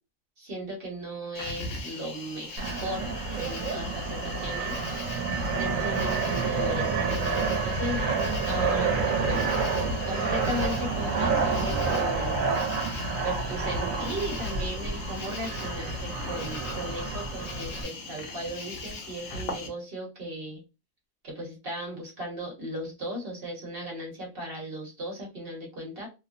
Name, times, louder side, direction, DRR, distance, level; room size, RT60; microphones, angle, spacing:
voice 1, 0.4-4.7 5.5-9.5 10.0-12.4 13.2-20.6 21.2-26.1, right 1 dB, 50° right, -1 dB, 1.2 m, -37 dB
Cricket, 1.3-19.7, left 3 dB, 70° left, 1.1 m, -40 dB
Fixed-wing aircraft airplane, 2.6-17.8, right 4 dB, 85° right, 1.1 m, -29 dB
2.9 x 2.0 x 2.5 m, 0.28 s
omnidirectional pair, 1.4 m